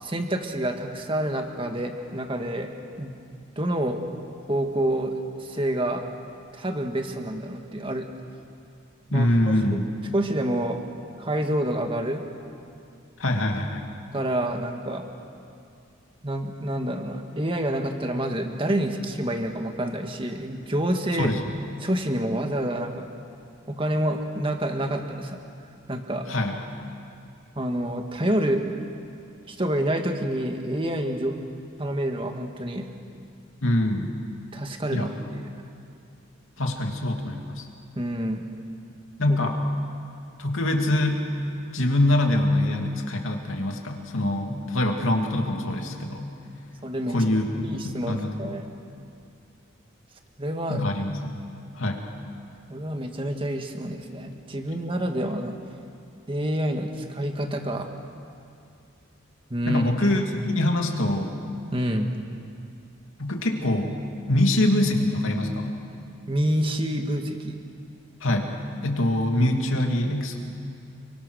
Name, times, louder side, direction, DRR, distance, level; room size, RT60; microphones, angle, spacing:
voice 1, 0.0-2.7 3.0-3.2 3.5-4.0 4.5-5.1 5.4-6.0 6.5-8.1 9.1-9.8 10.1-10.8 11.2-12.2 14.1-15.1 16.2-21.3 21.8-23.0 23.7-25.4 25.9-26.2 27.5-28.6 29.4-31.4 31.8-32.9 34.5-35.4 37.9-38.4 39.3-39.4 46.8-47.2 47.6-48.7 50.4-50.8 52.7-55.6 56.3-57.9 59.5-59.9 61.7-62.1 66.3-67.6, right 1 dB, 25° right, 4 dB, 1.8 m, -28 dB
voice 2, 9.1-9.9 13.2-13.9 21.2-21.4 26.3-26.6 33.6-34.1 34.9-35.1 36.6-37.6 39.2-39.6 40.4-41.2 41.7-46.3 47.1-48.6 50.7-51.3 51.8-52.0 59.7-61.3 63.2-64.0 64.3-65.8 68.2-68.5 68.8-70.4, left 1 dB, 80° left, 2 dB, 2.6 m, -24 dB
29.5 x 23.0 x 6.5 m, 2.5 s
head